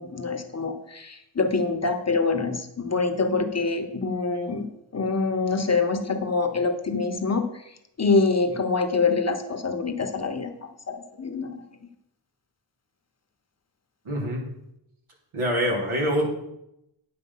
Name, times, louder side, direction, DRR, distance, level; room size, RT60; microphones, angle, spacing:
voice 1, 0.0-4.6 4.9-7.5 8.0-11.6, left 4 dB, 30° left, 5 dB, 1.0 m, -25 dB
voice 2, 14.1-14.4 15.3-16.2, equal, 80° right, -2 dB, 3.4 m, -25 dB
9.6 x 6.8 x 5.6 m, 0.82 s
wide cardioid pair, 135°, 49 cm